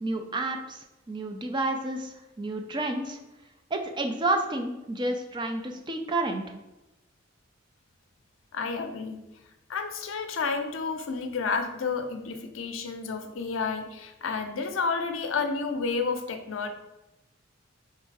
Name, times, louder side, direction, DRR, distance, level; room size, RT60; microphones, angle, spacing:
voice 1, 0.0-3.2 3.7-6.6, right 2 dB, 25° right, 4 dB, 0.4 m, -30 dB
voice 2, 8.5-9.2 9.7-16.7, left 4 dB, 80° left, 7 dB, 0.5 m, -30 dB
3.5 x 3.3 x 4.6 m, 0.96 s
head